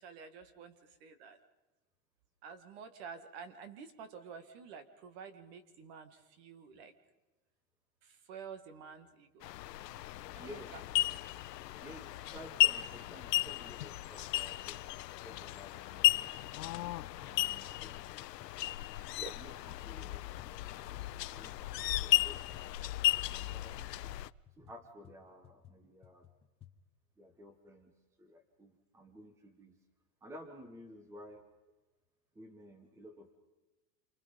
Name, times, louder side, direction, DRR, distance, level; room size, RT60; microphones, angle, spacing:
voice 1, 0.0-1.4 2.4-6.9 8.0-9.5 10.3-10.8 11.1-11.2 17.4-17.5 19.2-19.3, right 6 dB, 40° right, 10 dB, 2.0 m, -50 dB
sound 1, 9.4-24.3, left 15 dB, 90° left, 0.7 m, -34 dB
voice 2, 10.0-10.7 11.8-14.8 15.2-16.0 19.1-20.7 21.3-22.8 23.2-23.9 24.6-26.3 27.2-29.8 30.2-31.5 32.3-33.4, equal, 5° right, 7 dB, 1.1 m, -54 dB
sound 2, 16.3-21.1 21.4-26.7, left 11 dB, 10° left, 0.9 m, -59 dB
28.5 x 24.5 x 5.4 m, 1.1 s
supercardioid pair, 160°, 47 cm